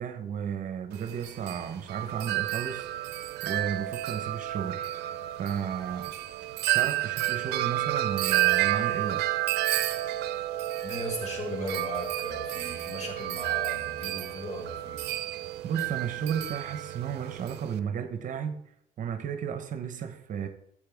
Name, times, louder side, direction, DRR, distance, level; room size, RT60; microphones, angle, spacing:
voice 1, 0.0-2.9 3.4-4.9 5.4-6.1 6.7-9.4 15.6-18.6 19.0-20.5, right 8 dB, 50° right, 1.0 m, -33 dB
Wind chime, 0.9-17.8, right 15 dB, 80° right, 0.6 m, -31 dB
voice 2, 10.8-15.0, equal, 45° left, 4.8 m, -37 dB
13.5 x 7.8 x 3.5 m
cardioid pair, 110°, 17 cm